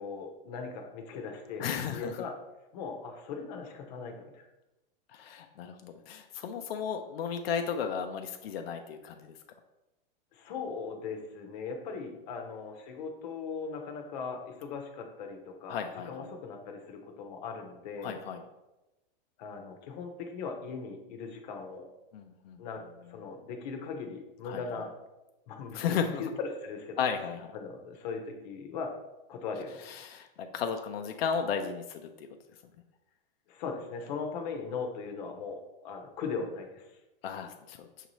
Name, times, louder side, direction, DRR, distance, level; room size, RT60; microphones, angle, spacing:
voice 1, 0.0-2.4 2.7-4.5 10.3-18.2 19.4-21.9 22.6-22.8 23.1-24.9 25.5-27.0 27.5-29.0 29.3-30.1 33.5-36.9, left 5 dB, 45° left, 3 dB, 0.7 m, -39 dB
voice 2, 1.6-2.1 5.1-9.4 15.7-16.3 18.0-18.4 22.1-22.6 24.4-24.6 25.7-26.2 27.0-27.5 29.9-30.3 30.5-32.3 37.2-37.9, left 7 dB, 90° left, 5 dB, 0.5 m, -34 dB
5.8 x 2.7 x 3.0 m, 0.99 s
supercardioid pair, 160°, 29 cm